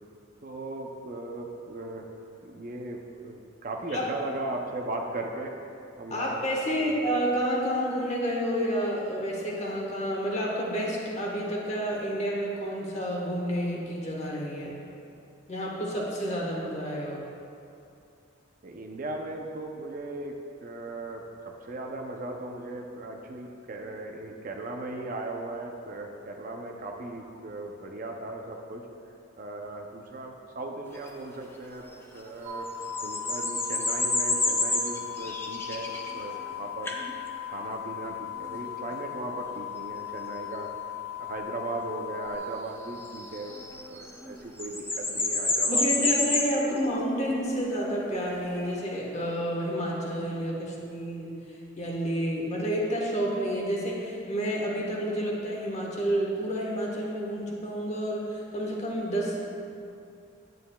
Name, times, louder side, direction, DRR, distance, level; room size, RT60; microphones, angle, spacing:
voice 1, 0.4-2.1 2.4-5.5 6.0-6.3 6.7-7.1 18.6-28.8 29.4-31.8 32.1-32.7 33.0-36.9 37.5-40.7 41.2-43.6 43.9-46.1 46.7-46.8, right 2 dB, 45° right, 2 dB, 0.5 m, -37 dB
voice 2, 6.1-14.7 15.5-17.3 45.7-51.4 51.8-59.4, equal, 35° left, -3 dB, 1.2 m, -30 dB
sound 1, 30.9-31.1 32.5-36.5 36.9-37.1 38.5-38.6 43.0-44.3 44.6-46.6 48.3-48.7, left 2 dB, 10° left, 0.6 m, -28 dB
sound 2, 32.4-42.4, left 11 dB, 25° right, 1.3 m, -38 dB
9.2 x 9.1 x 2.2 m, 2.6 s
head